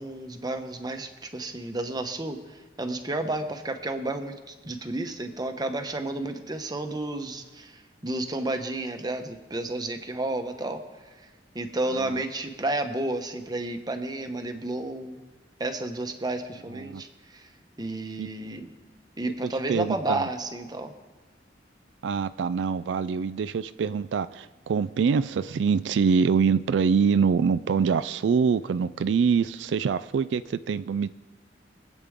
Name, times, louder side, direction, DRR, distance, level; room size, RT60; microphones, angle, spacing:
voice 1, 0.0-2.4 2.8-10.8 11.5-15.2 15.6-17.5 17.8-18.7 19.2-20.9, right 2 dB, 25° right, 6 dB, 1.0 m, -31 dB
voice 2, 11.9-12.2 16.7-17.0 18.2-18.3 19.7-20.3 22.0-31.1, right 6 dB, 85° right, 14 dB, 0.3 m, -25 dB
24.5 x 8.3 x 3.7 m, 1.3 s
head